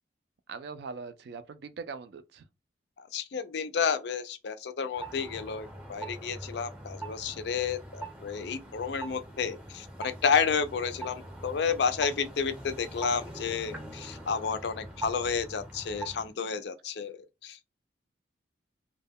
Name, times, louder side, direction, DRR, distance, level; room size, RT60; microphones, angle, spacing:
voice 1, 0.5-2.5, right 5 dB, 55° right, 0.3 m, -41 dB
voice 2, 3.0-17.7, left 6 dB, 60° left, 0.4 m, -31 dB
sound 1, 4.9-16.3, right 2 dB, 5° right, 0.6 m, -43 dB
2.2 x 2.1 x 3.4 m
head